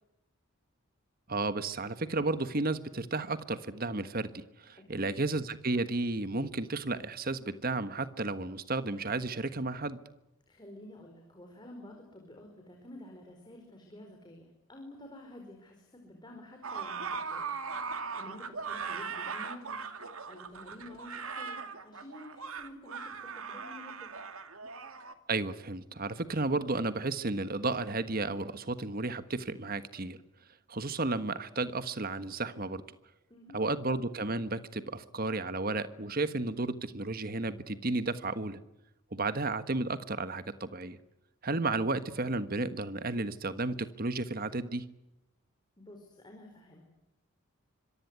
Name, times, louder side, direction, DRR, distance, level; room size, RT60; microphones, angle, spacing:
voice 1, 1.3-10.0 25.3-30.2 30.7-32.8 33.5-38.6 39.1-41.0 41.4-44.9, right 2 dB, 45° right, 12 dB, 1.4 m, -33 dB
voice 2, 4.8-5.1 10.5-17.5 17.8-19.8 20.3-24.1 33.3-33.6 45.8-47.0, left 1 dB, 20° left, 2 dB, 4.7 m, -50 dB
sound 1, 16.6-25.1, right 5 dB, 75° right, 2.3 m, -39 dB
26.0 x 23.5 x 9.6 m, 0.91 s
head